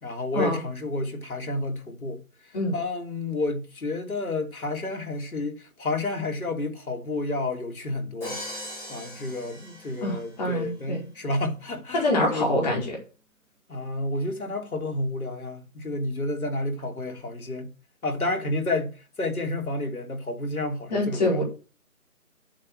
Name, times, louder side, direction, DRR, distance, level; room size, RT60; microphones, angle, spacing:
voice 1, 0.0-2.2 2.7-8.4 8.9-12.5 13.7-17.7 18.0-18.9 19.2-21.4, left 2 dB, 90° left, 3.3 m, -30 dB
Crash cymbal, 8.2-10.4, left 1 dB, 5° left, 4.1 m, -39 dB
voice 2, 10.0-11.0 11.9-13.0 20.9-21.4, left 1 dB, 30° left, 5.1 m, -25 dB
9.3 x 7.4 x 6.3 m
figure-of-eight pair, 165°, 42 cm